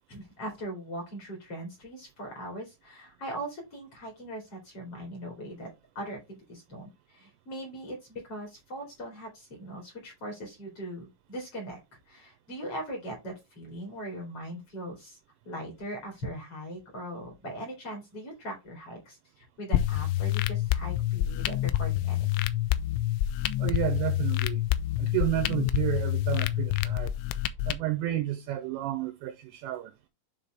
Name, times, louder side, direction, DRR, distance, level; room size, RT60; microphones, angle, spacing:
voice 1, 0.1-11.8 12.1-15.2 15.4-22.3, right 1 dB, 35° left, 2.8 m, -40 dB
sound 1, 19.7-27.7, left 14 dB, 85° left, 2.7 m, -27 dB
voice 2, 23.6-24.6 25.0-27.1 27.7-29.9, right 14 dB, 85° right, 2.6 m, -31 dB
9.0 x 4.0 x 3.4 m
omnidirectional pair, 5.8 m